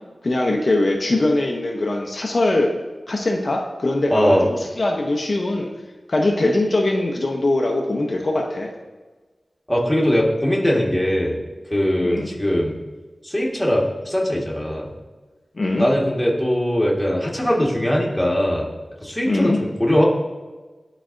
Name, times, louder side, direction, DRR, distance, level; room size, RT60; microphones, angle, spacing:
voice 1, 0.2-2.8 3.1-5.7 6.1-8.7 12.0-12.3 15.6-15.9 19.3-19.6, left 2 dB, 55° left, 0 dB, 0.7 m, -21 dB
voice 2, 4.1-4.4 9.7-11.4 11.7-12.8 13.2-14.9 15.8-18.7 19.0-20.0, equal, 5° left, -3 dB, 1.4 m, -20 dB
11.0 x 4.1 x 2.5 m, 1.3 s
wide cardioid pair, 75°, 0 cm